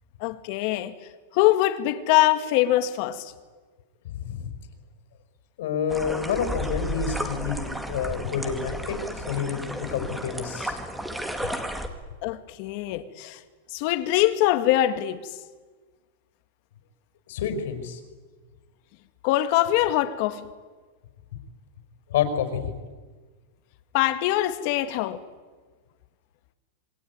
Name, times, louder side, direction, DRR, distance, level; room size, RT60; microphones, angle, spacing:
voice 1, 0.2-0.9 1.3-3.3 12.2-13.4 13.7-15.3 19.2-20.5 23.9-25.2, left 15 dB, 50° left, 2.0 m, -23 dB
voice 2, 4.0-4.5 5.6-10.8 17.3-18.0 22.1-22.7, left 7 dB, 75° left, 5.3 m, -29 dB
sound 1, 5.9-11.9, right 1 dB, 5° right, 2.2 m, -33 dB
27.5 x 21.5 x 9.7 m
supercardioid pair, 155°, 0 cm